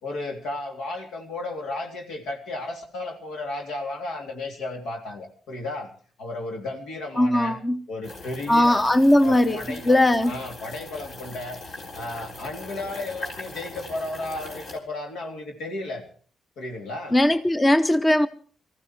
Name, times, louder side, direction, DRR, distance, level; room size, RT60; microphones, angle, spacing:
voice 1, 0.0-5.9 6.2-7.6 7.9-8.9 9.2-11.6 11.9-16.0 16.6-17.2, left 2 dB, 80° left, 3.3 m, -34 dB
voice 2, 7.2-7.8 8.5-9.6 9.8-10.3 17.1-18.3, left 1 dB, 20° left, 0.8 m, -19 dB
sound 1, 8.0-14.8, left 2 dB, 60° left, 3.7 m, -40 dB
19.5 x 14.5 x 4.6 m
cardioid pair, 90°, 0 cm